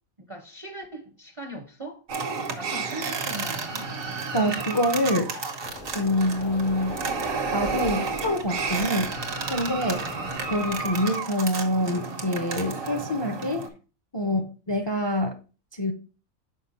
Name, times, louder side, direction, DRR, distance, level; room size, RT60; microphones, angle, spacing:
voice 1, 0.2-2.0 2.6-3.9 9.9-10.2 14.2-14.5, right 1 dB, 35° right, 0.6 m, -40 dB
sound 1, 2.1-13.7, right 4 dB, 85° right, 1.5 m, -31 dB
voice 2, 4.3-5.3 5.9-6.9 7.5-9.1 9.5-10.0 10.5-13.7 14.1-15.4 15.8-15.9, left 1 dB, 30° left, 0.5 m, -26 dB
sound 2, 5.6-11.0, left 1 dB, 75° left, 2.4 m, -42 dB
6.1 x 4.8 x 4.1 m
omnidirectional pair, 1.3 m